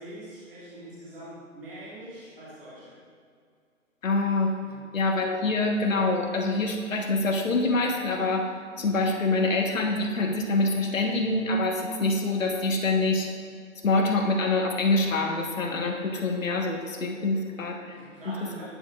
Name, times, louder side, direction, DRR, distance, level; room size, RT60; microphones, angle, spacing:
voice 1, 0.0-3.0 4.6-4.8 17.9-18.7, right 1 dB, 40° right, -8 dB, 1.8 m, -43 dB
voice 2, 4.0-4.5 4.9-8.5 8.8-13.3 13.8-18.0 18.2-18.3, left 2 dB, 70° left, 1 dB, 1.3 m, -25 dB
10.0 x 7.3 x 2.4 m, 2.2 s
hypercardioid pair, 170°, 41 cm